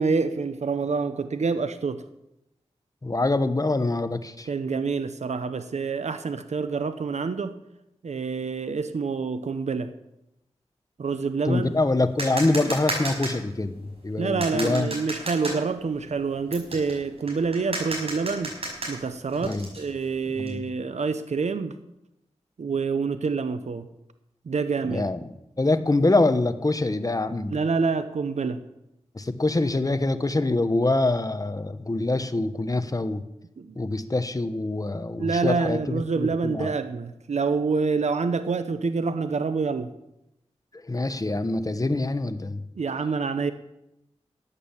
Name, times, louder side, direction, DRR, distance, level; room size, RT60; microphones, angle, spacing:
voice 1, 0.0-2.0 4.5-7.5 8.0-9.9 11.0-11.7 14.2-18.5 18.9-21.8 22.6-23.9 24.5-25.1 27.5-28.6 33.6-33.7 35.2-39.9 42.8-43.5, right 4 dB, 75° right, 11 dB, 0.9 m, -27 dB
voice 2, 3.0-4.5 11.4-15.0 19.4-19.7 20.4-20.6 24.9-25.3 25.6-27.6 29.1-33.2 33.8-36.7 40.8-42.6, left 2 dB, 30° left, 11 dB, 1.2 m, -25 dB
sound 1, 11.6-20.5, right 1 dB, 55° right, 5.9 m, -34 dB
13.5 x 8.8 x 7.3 m, 0.85 s
cardioid pair, 55°, 12 cm